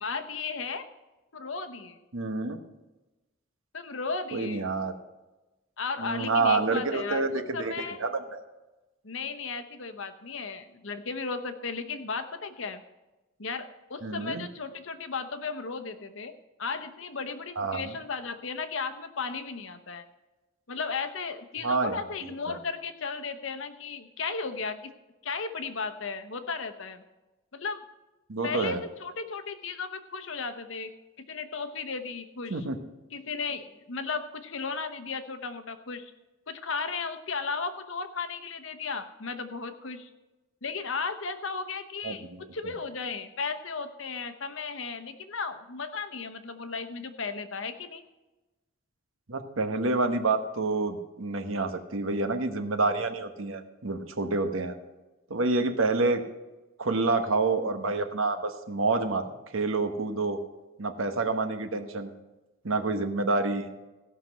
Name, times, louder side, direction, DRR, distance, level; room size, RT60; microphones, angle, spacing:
voice 1, 0.0-0.9 1.3-2.0 3.7-4.7 5.8-8.0 9.0-12.8 13.4-16.3 16.6-20.0 20.7-24.9 25.2-27.0 27.5-27.8 28.4-30.9 31.3-32.7 33.1-36.1 36.5-40.1 40.6-42.3 42.5-48.0, left 4 dB, 65° left, 8 dB, 0.9 m, -35 dB
voice 2, 2.1-2.6 4.3-5.0 6.0-8.4 14.0-14.5 17.6-17.9 21.6-22.6 28.3-28.8 32.5-32.8 42.0-42.4 49.3-54.7 55.3-56.2 56.8-60.4 60.8-62.1 62.6-63.7, right 3 dB, 70° right, 8 dB, 1.1 m, -28 dB
16.0 x 5.9 x 6.2 m, 1.1 s
head